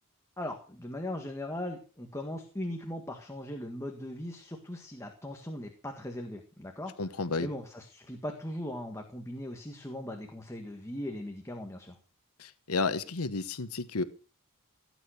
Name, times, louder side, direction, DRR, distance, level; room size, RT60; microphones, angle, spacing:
voice 1, 0.4-7.1 7.4-12.0, left 1 dB, 15° left, 3 dB, 1.7 m, -39 dB
voice 2, 7.0-7.5 12.4-14.0, left 3 dB, 85° left, 12 dB, 1.1 m, -32 dB
17.0 x 9.0 x 6.5 m, 0.39 s
head